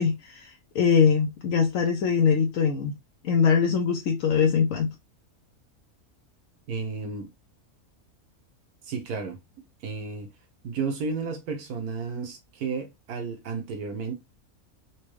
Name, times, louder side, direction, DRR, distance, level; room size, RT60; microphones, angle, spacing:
voice 1, 0.0-2.9 3.2-4.9, left 6 dB, 65° left, 1.0 m, -22 dB
voice 2, 6.7-7.3 8.8-9.4 9.8-10.3 10.6-14.1, right 4 dB, 85° right, 1.4 m, -32 dB
4.2 x 2.3 x 3.1 m
omnidirectional pair, 1.5 m